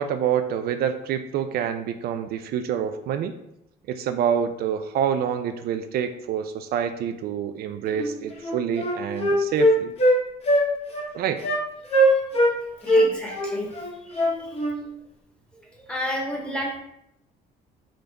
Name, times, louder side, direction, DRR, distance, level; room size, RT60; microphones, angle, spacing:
voice 1, 0.0-3.3 3.9-9.9 11.1-11.4, right 8 dB, 65° right, 8 dB, 0.4 m, -27 dB
Wind instrument woodwind instrument, 8.0-8.1 8.4-10.2 10.5-10.7 10.9-11.1 11.4-11.6 11.9-12.5 12.9-14.8, equal, 35° left, 1.1 m, -20 dB
voice 2, 11.8-12.3 12.8-13.7 14.1-14.6 15.8-16.8, equal, 5° left, -1 dB, 1.2 m, -32 dB
3.9 x 3.7 x 3.4 m, 0.80 s
cardioid pair, 110°, 17 cm